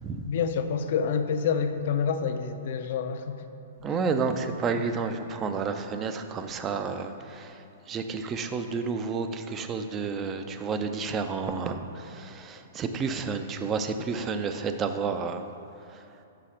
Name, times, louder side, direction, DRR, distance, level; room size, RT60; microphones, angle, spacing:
voice 1, 0.3-3.4, left 6 dB, 60° left, 8 dB, 0.5 m, -27 dB
voice 2, 3.8-15.5 15.8-16.1, right 5 dB, 20° right, 8 dB, 0.4 m, -31 dB
5.8 x 5.6 x 4.9 m, 2.8 s
hypercardioid pair, 145°, 0 cm